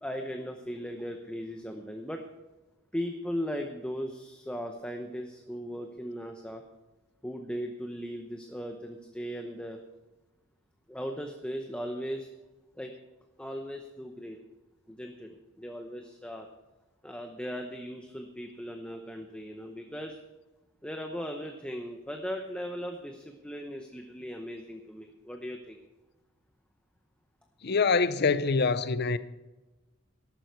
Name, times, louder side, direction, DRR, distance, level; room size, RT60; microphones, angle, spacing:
voice 1, 0.0-2.2 2.9-6.6 7.2-9.8 10.9-12.3 12.7-12.9 13.4-14.4 14.9-16.5 17.0-20.2 20.8-25.8, equal, 5° left, 0.8 m, -38 dB
voice 2, 27.6-29.2, left 4 dB, 50° left, 0.6 m, -25 dB
14.0 x 11.5 x 4.6 m
head